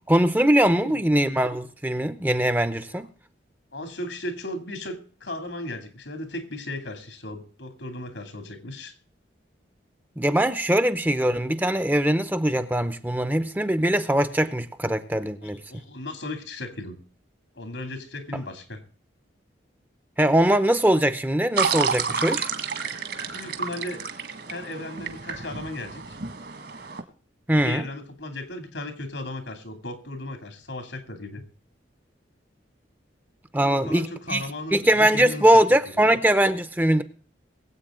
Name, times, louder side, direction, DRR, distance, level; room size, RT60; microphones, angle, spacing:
voice 1, 0.1-3.1 10.2-15.6 20.2-22.5 27.5-27.8 33.5-34.4 34.7-37.0, right 1 dB, 10° right, 0.6 m, -21 dB
voice 2, 3.7-8.9 15.4-17.0 17.5-18.8 22.8-23.0 23.3-24.0 24.5-26.2 27.5-31.4 33.5-36.1, left 1 dB, 85° left, 2.7 m, -36 dB
sound 1, 21.6-27.0, right 6 dB, 65° right, 1.9 m, -30 dB
22.0 x 8.3 x 3.7 m
head